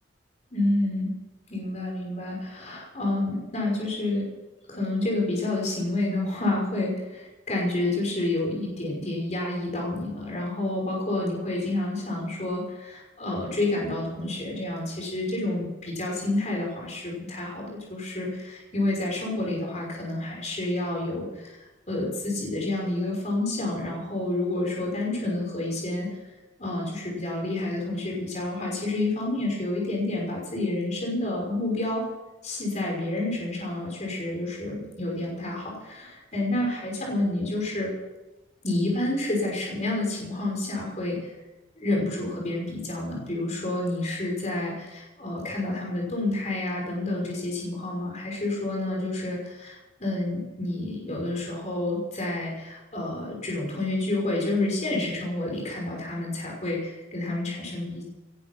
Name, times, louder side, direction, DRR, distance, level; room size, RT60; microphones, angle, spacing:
voice 1, 0.5-1.1 1.5-4.3 4.7-26.2 26.6-32.0 32.4-37.9 38.6-41.3 41.8-58.0, left 2 dB, 35° left, -1 dB, 5.7 m, -29 dB
19.5 x 11.0 x 6.1 m, 1.1 s
head